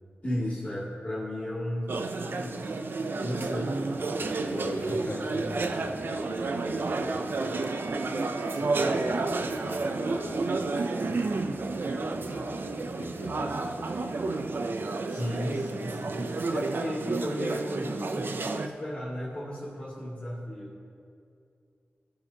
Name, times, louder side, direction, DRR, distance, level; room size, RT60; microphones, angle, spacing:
voice 1, 0.2-2.7 3.2-3.7 8.5-9.2 15.1-20.7, left 1 dB, 30° left, -8 dB, 2.3 m, -35 dB
sound 1, 1.9-18.7, right 3 dB, 55° right, 0.5 m, -31 dB
voice 2, 3.5-7.5 8.6-14.6, left 1 dB, 60° left, -1 dB, 1.6 m, -42 dB
sound 2, 3.8-11.1, equal, 10° right, 1.5 m, -43 dB
Musical instrument, 7.5-13.9 14.8-15.8, right 3 dB, 85° left, 2.5 m, -53 dB
16.5 x 7.6 x 2.9 m, 2.5 s
wide cardioid pair, 110°, 4 cm